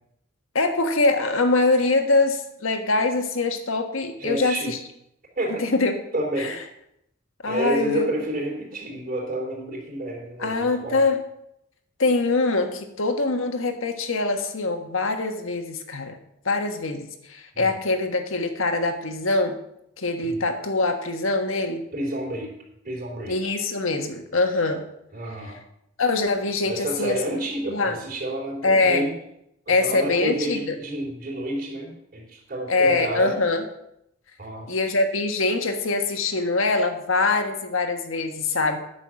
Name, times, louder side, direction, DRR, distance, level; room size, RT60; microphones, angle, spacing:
voice 1, 0.5-4.8 5.6-6.0 6.4-6.6 7.4-8.1 10.4-11.2 12.0-16.2 16.4-19.6 20.0-21.8 23.3-24.8 26.0-27.2 27.7-28.0 28.6-29.1 29.7-30.7 32.7-33.6 34.7-38.8, left 3 dB, 75° left, 5 dB, 1.5 m, -23 dB
voice 2, 4.2-4.8 5.4-5.6 6.1-6.5 7.5-11.0 17.5-17.7 20.2-20.4 21.9-22.5 22.8-23.3 25.1-25.6 26.6-29.1 29.7-33.4 34.4-34.7, right 1 dB, 45° right, -2 dB, 3.4 m, -29 dB
9.9 x 6.5 x 7.6 m, 0.80 s
head